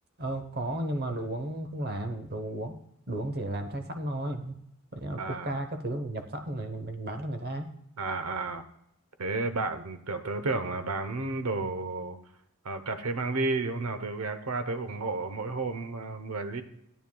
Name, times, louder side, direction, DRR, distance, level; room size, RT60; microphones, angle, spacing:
voice 1, 0.2-2.7 3.1-4.6 4.9-7.7, right 1 dB, 45° right, 7 dB, 0.9 m, -34 dB
voice 2, 5.2-5.5 8.0-8.6 9.2-12.2 12.6-16.6, right 3 dB, 80° right, 10 dB, 0.9 m, -32 dB
13.0 x 9.0 x 2.3 m, 0.77 s
head